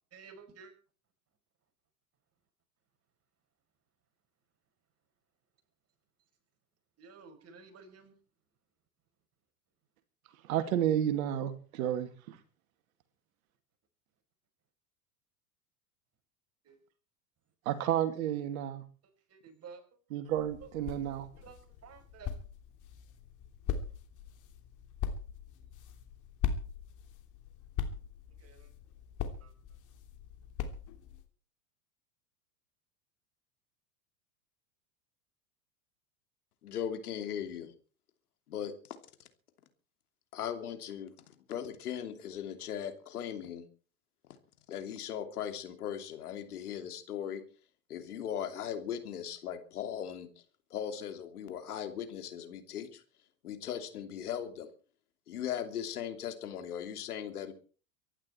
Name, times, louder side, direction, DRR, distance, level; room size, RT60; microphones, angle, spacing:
voice 1, 0.1-0.7 7.0-8.2 16.6-16.8 19.0-19.8 20.6-20.7 21.4-22.3 28.4-28.7 29.3-29.5, right 5 dB, 30° right, 6 dB, 5.5 m, -53 dB
voice 2, 10.4-12.4 17.7-18.8 20.1-21.3, right 11 dB, 65° right, 10 dB, 2.5 m, -31 dB
sound 1, 20.3-31.2, left 7 dB, 40° left, 3.1 m, -40 dB
voice 3, 36.6-37.7 38.5-38.7 40.3-41.1 41.5-43.6 44.7-47.4 47.9-50.3 50.7-53.0 53.4-54.7 55.3-57.5, left 9 dB, 75° left, 8 dB, 3.0 m, -38 dB
24.0 x 11.5 x 4.5 m, 0.40 s
hypercardioid pair, 90°, 45 cm